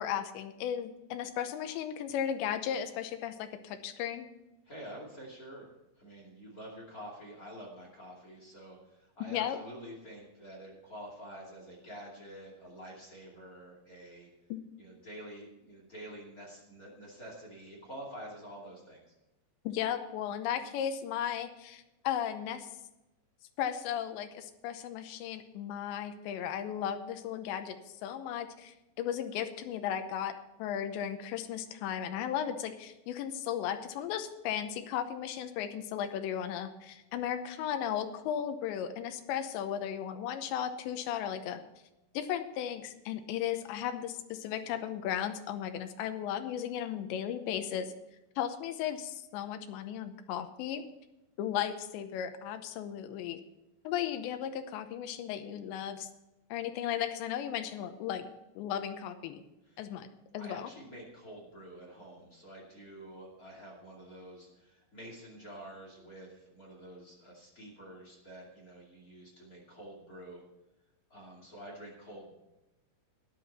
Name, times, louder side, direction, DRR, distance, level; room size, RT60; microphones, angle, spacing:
voice 1, 0.0-4.3 9.3-9.6 14.5-14.6 19.6-22.7 23.6-30.3 30.6-41.6 42.1-47.9 48.4-50.8 51.4-53.4 53.8-56.1 56.5-58.3 58.6-59.4 59.8-60.1 60.3-60.7, left 9 dB, 90° left, 8 dB, 3.1 m, -35 dB
voice 2, 4.6-5.7 6.0-14.3 14.8-19.1 59.6-59.9 60.4-70.4 71.1-72.3, right 1 dB, 25° left, -2 dB, 2.1 m, -48 dB
14.0 x 10.5 x 4.2 m, 0.98 s
omnidirectional pair, 5.1 m